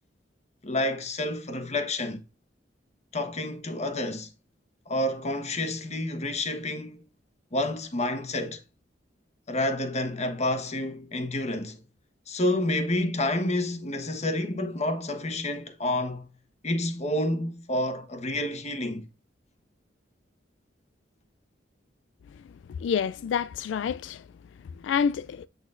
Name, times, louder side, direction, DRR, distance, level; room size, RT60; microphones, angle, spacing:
voice 1, 0.6-2.2 3.1-4.3 4.9-7.0 7.5-8.6 9.5-11.8 12.3-16.3 16.6-19.1, left 1 dB, 40° left, 1.2 m, -29 dB
voice 2, 22.8-24.2 24.8-25.5, left 7 dB, 75° left, 0.3 m, -28 dB
8.1 x 6.3 x 2.5 m
head